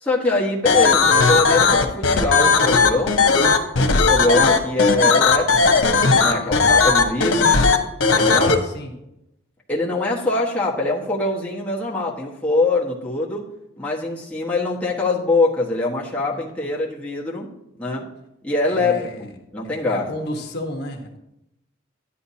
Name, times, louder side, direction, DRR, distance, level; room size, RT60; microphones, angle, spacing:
voice 1, 0.0-3.2 3.8-7.6 8.1-8.5 9.7-13.4 13.8-17.5 17.8-18.1 18.4-19.1 19.5-20.1, left 2 dB, 5° left, -5 dB, 1.4 m, -23 dB
sound 1, 0.7-8.5, left 4 dB, 90° left, 1.0 m, -16 dB
voice 2, 6.3-6.7 8.1-8.9 16.3-16.4 18.7-19.3 19.6-21.2, left 1 dB, 55° left, 2 dB, 1.3 m, -32 dB
11.5 x 10.0 x 2.8 m, 0.85 s
head